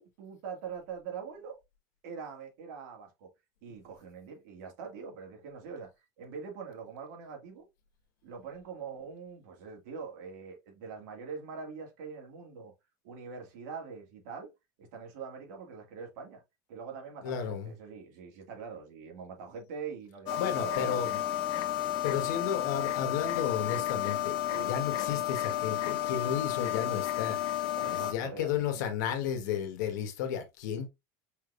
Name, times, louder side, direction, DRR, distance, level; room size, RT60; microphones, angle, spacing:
voice 1, 0.0-1.6 2.0-3.3 3.6-7.7 8.2-12.7 13.0-14.5 14.8-16.4 16.7-21.3 24.5-24.7 27.7-28.8, right 6 dB, 75° right, 2.2 m, -43 dB
voice 2, 17.2-17.7 20.4-21.2 21.7-24.3 24.6-27.4 27.9-30.9, left 8 dB, 85° left, 1.5 m, -33 dB
sound 1, 20.3-28.1, left 13 dB, 55° left, 0.8 m, -32 dB
5.5 x 3.5 x 2.5 m
supercardioid pair, 140°, 10 cm